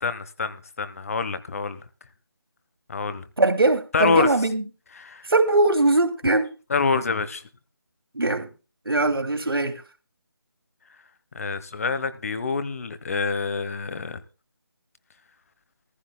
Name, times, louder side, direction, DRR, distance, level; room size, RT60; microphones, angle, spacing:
voice 1, 0.0-1.8 2.9-3.2 3.9-4.3 5.0-5.3 6.7-7.4 11.3-14.2, left 4 dB, 40° left, 1.2 m, -26 dB
voice 2, 3.4-4.6 5.3-6.5 8.1-8.5 8.9-9.8, right 2 dB, 80° right, 2.8 m, -21 dB
16.5 x 15.0 x 2.3 m
figure-of-eight pair, 160°, 12 cm